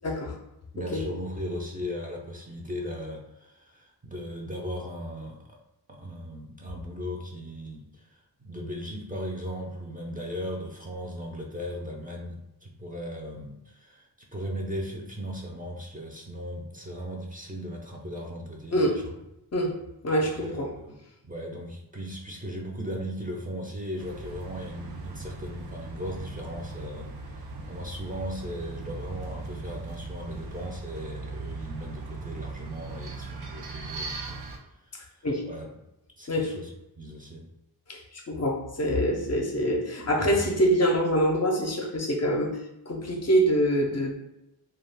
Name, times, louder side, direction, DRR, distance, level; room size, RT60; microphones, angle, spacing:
voice 1, 0.0-0.4 0.9-1.1 18.7-19.1 19.5-20.7 35.2-35.5 36.3-36.6 37.9-42.6 42.9-44.1, equal, 45° left, 0.5 m, -25 dB
voice 2, 0.7-5.6 5.9-19.0 20.2-21.0 21.2-27.1 27.4-34.4 34.9-35.7 36.2-36.7 37.0-37.4 40.2-40.5, equal, 20° right, 0.5 m, -37 dB
sound 1, 24.0-34.6, right 3 dB, 80° right, 0.6 m, -39 dB
2.3 x 2.3 x 3.3 m
wide cardioid pair, 80°, 38 cm